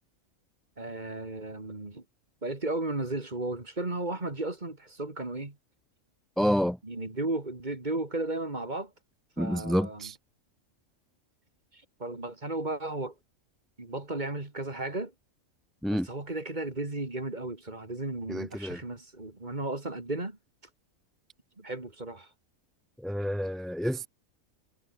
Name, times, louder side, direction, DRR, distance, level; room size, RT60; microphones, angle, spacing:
voice 1, 0.8-2.0 2.4-5.6 6.8-8.9 9.4-10.1 11.7-13.1 13.8-15.1 15.9-20.4 21.6-22.3, right 2 dB, 35° right, 2.9 m, -34 dB
voice 2, 6.4-6.8 9.4-10.2 15.8-16.1 18.3-18.8 23.0-24.1, equal, ahead, 1.3 m, -28 dB
omnidirectional pair, 1.4 m